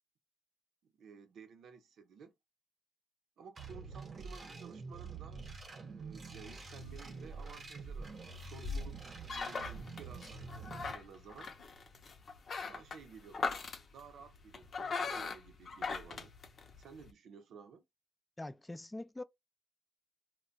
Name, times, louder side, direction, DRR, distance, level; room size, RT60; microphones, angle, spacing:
voice 1, 0.8-2.3 3.4-5.5 5.9-9.0 9.3-11.5 12.6-16.3 16.8-17.9, right 6 dB, 85° right, 0.7 m, -54 dB
Filthy Reese Resample, 3.6-10.9, right 4 dB, 50° right, 0.7 m, -47 dB
sound 1, 6.8-17.1, left 4 dB, 50° left, 0.6 m, -42 dB
voice 2, 18.4-19.2, left 2 dB, 15° left, 0.3 m, -43 dB
2.2 x 2.2 x 3.8 m
cardioid pair, 110°, 0 cm